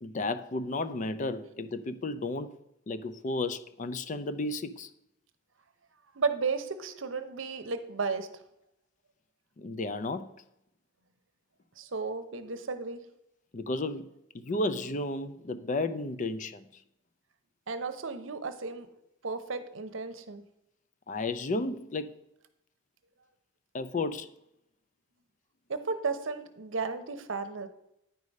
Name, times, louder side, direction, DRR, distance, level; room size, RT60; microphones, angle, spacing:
voice 1, 0.0-2.5 2.9-4.9 9.6-10.3 13.5-16.6 21.1-22.1 23.7-24.3, left 2 dB, 40° left, 12 dB, 0.5 m, -33 dB
voice 2, 6.1-8.3 11.8-13.0 17.7-18.9 19.2-20.4 25.7-27.7, right 4 dB, 75° right, 10 dB, 0.8 m, -33 dB
9.4 x 4.9 x 5.3 m, 0.82 s
head